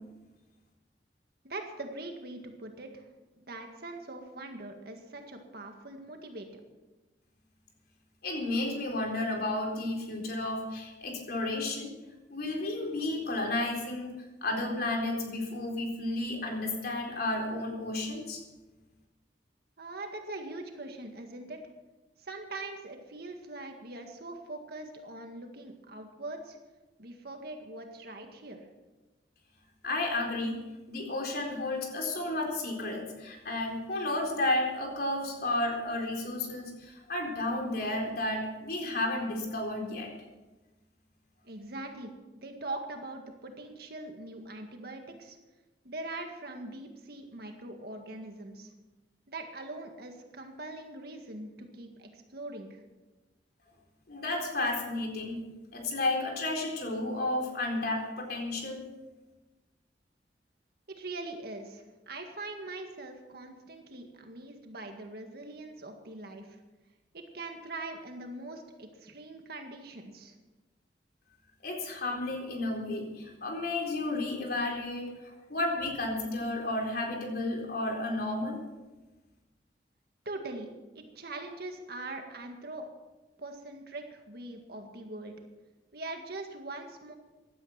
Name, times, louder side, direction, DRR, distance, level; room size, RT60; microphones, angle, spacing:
voice 1, 1.4-3.1 3.3-6.5 19.8-21.6 22.2-26.6 27.0-28.7 41.4-42.1 42.4-45.4 45.8-48.7 49.3-52.8 60.9-66.6 67.1-70.4 80.3-80.7 81.0-82.9 83.4-85.3 85.9-87.1, right 2 dB, 60° right, 4 dB, 1.9 m, -42 dB
voice 2, 8.2-11.9 12.3-14.1 14.4-18.4 29.8-30.6 30.9-40.1 54.1-55.4 55.7-58.8 71.6-78.6, left 2 dB, 60° left, 1 dB, 4.0 m, -32 dB
16.5 x 12.0 x 5.8 m, 1.1 s
head